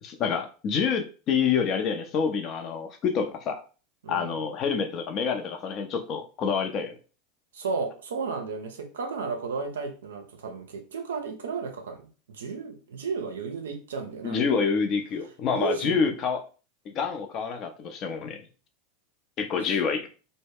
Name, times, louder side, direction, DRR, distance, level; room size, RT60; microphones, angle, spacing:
voice 1, 0.0-3.6 4.1-7.0 14.2-16.4 16.9-18.4 19.4-20.1, left 6 dB, 45° left, 0.5 m, -27 dB
voice 2, 4.0-4.4 7.5-12.0 12.3-14.4 15.5-16.1, right 4 dB, 75° right, 0.5 m, -33 dB
2.2 x 2.0 x 3.4 m
hypercardioid pair, 85°, 0 cm